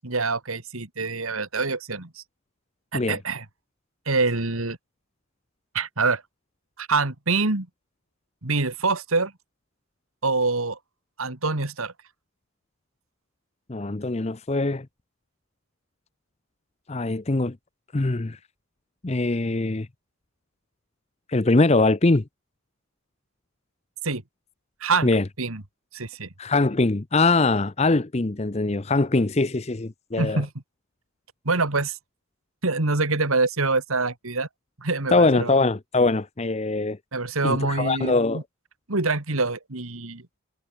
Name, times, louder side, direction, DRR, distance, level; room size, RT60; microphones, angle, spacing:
voice 1, 0.0-2.2 2.9-3.5 4.1-4.8 5.7-6.2 6.8-7.7 8.4-9.3 10.2-10.8 11.2-11.9 24.0-24.2 24.8-25.1 25.4-25.6 25.9-26.3 30.2-30.5 31.4-32.0 32.6-34.5 34.8-35.6 37.1-38.4 38.9-40.2, right 3 dB, 80° right, 2.4 m, -25 dB
voice 2, 13.7-14.9 16.9-17.6 17.9-18.4 19.0-19.9 21.3-22.2 25.0-25.2 26.4-30.4 35.1-37.0 37.4-38.4, left 3 dB, 30° left, 0.7 m, -22 dB
head